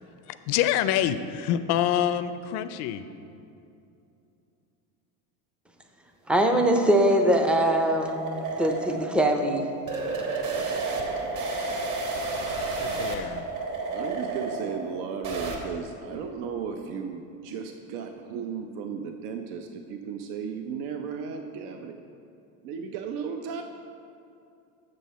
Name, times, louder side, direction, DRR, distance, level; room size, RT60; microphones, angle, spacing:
voice 1, 0.3-3.0 12.8-13.5, left 10 dB, 65° left, 11 dB, 0.5 m, -26 dB
voice 2, 6.3-8.2 8.6-9.7, right 1 dB, 5° right, 4 dB, 0.4 m, -22 dB
sound 1, 6.6-15.6, right 3 dB, 45° right, 1.3 m, -32 dB
voice 3, 13.9-21.9 22.6-23.6, right 6 dB, 80° right, 5 dB, 0.7 m, -35 dB
7.6 x 6.4 x 4.1 m, 2.6 s
supercardioid pair, 120°, 43 cm